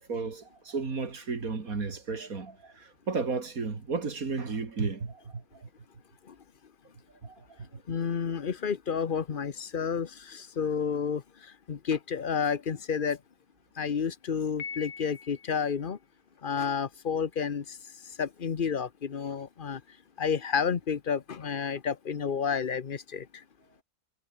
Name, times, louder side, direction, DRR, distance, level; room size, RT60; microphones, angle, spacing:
voice 1, 0.1-5.4 7.2-7.3, right 4 dB, 70° right, 3.1 m, -33 dB
voice 2, 7.9-13.2 13.7-16.0 16.4-23.4, left 6 dB, 40° left, 1.0 m, -31 dB
Piano, 14.6-15.7, left 6 dB, 75° left, 2.2 m, -41 dB
omnidirectional pair, 1.5 m